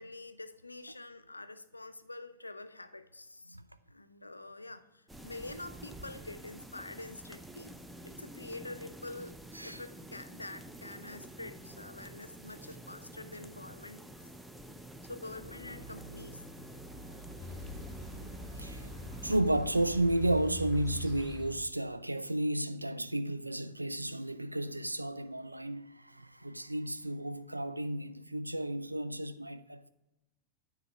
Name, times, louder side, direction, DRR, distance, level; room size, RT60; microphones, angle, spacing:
voice 1, 0.0-3.6 3.9-7.7 8.0-9.3 9.6-14.0 15.0-16.5, left 2 dB, 85° left, 0.4 m, -46 dB
sound 1, 5.1-19.4, right 1 dB, 5° right, 0.5 m, -49 dB
sound 2, 15.1-20.3, left 2 dB, 15° left, 1.1 m, -51 dB
sound 3, 17.4-21.7, right 1 dB, 25° right, 2.1 m, -43 dB
voice 2, 19.2-29.9, right 1 dB, 85° right, 0.3 m, -32 dB
9.6 x 3.3 x 6.5 m
figure-of-eight pair, 90°, 0 cm